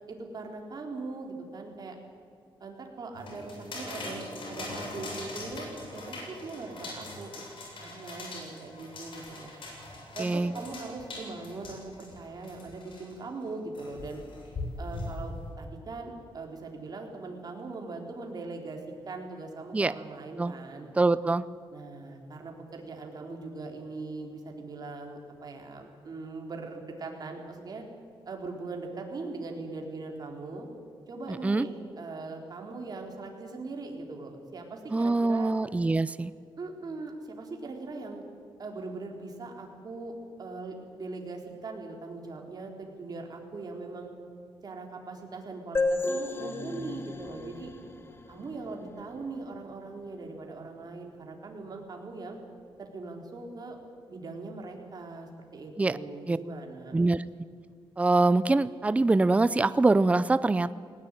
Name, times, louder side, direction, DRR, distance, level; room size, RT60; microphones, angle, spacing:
voice 1, 0.1-2.0 2.6-7.4 7.8-9.5 10.1-14.2 14.8-18.8 19.1-20.9 21.7-27.8 28.3-30.7 31.1-35.5 36.6-38.2 38.6-44.1 44.6-47.7 48.3-52.4 52.8-53.8 54.1-57.0, right 3 dB, 45° right, 2 dB, 4.1 m, -40 dB
sound 1, 3.1-13.1 13.7-15.5, left 2 dB, 65° left, 7.4 m, -41 dB
voice 2, 10.2-10.5 19.7-19.9 20.4-20.5 21.0-21.4 31.4-31.7 34.9-36.3 55.8-56.0 56.3-56.4 56.9-57.2 58.0-60.7, right 2 dB, 15° right, 16 dB, 0.5 m, -24 dB
sound 2, 45.7-49.3, left 2 dB, 25° left, 1.7 m, -33 dB
19.5 x 19.0 x 9.0 m, 2.3 s
wide cardioid pair, 130°, 9 cm